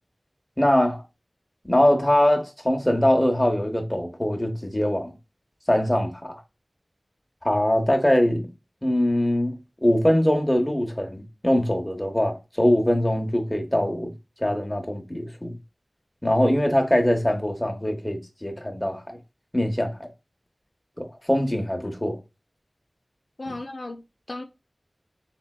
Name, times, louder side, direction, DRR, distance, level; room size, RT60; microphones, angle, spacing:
voice 1, 0.6-1.0 1.6-5.1 5.7-6.4 7.4-8.5 8.8-9.5 9.8-14.1 14.4-15.6 16.2-19.2 19.5-20.1 21.0-22.2, left 1 dB, 20° left, 0.7 m, -22 dB
voice 2, 23.4-24.4, left 2 dB, 70° left, 0.4 m, -36 dB
3.8 x 2.2 x 2.3 m
wide cardioid pair, 40°, 0 cm